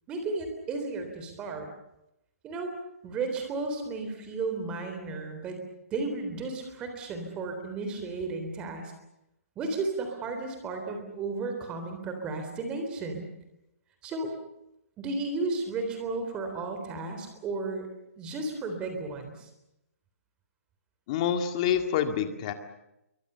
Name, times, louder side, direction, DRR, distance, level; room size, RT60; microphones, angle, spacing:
voice 1, 0.1-1.7 2.4-2.7 3.0-5.6 5.9-8.9 9.6-13.3 14.0-14.3 15.0-17.9 18.2-19.5, right 3 dB, 10° right, 5 dB, 3.6 m, -33 dB
voice 2, 21.1-22.5, left 9 dB, 25° left, 7 dB, 2.0 m, -27 dB
27.0 x 23.5 x 6.9 m, 0.86 s
hypercardioid pair, 175°, 8 cm